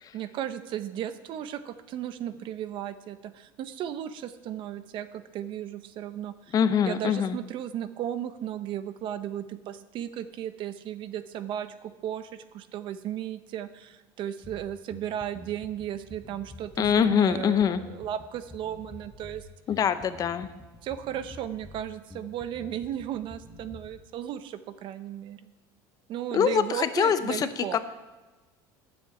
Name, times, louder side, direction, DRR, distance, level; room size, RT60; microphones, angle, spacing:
voice 1, 0.1-6.5 6.8-19.5 20.8-25.5 26.1-27.8, right 10 dB, 50° right, 11 dB, 0.8 m, -35 dB
voice 2, 6.5-7.4 16.8-17.8 19.7-20.5 26.3-27.8, left 8 dB, 35° left, 12 dB, 0.7 m, -24 dB
Bass guitar, 14.4-24.0, left 2 dB, 5° left, 1.0 m, -48 dB
9.9 x 7.5 x 8.1 m, 1.2 s
cardioid pair, 130°, 11 cm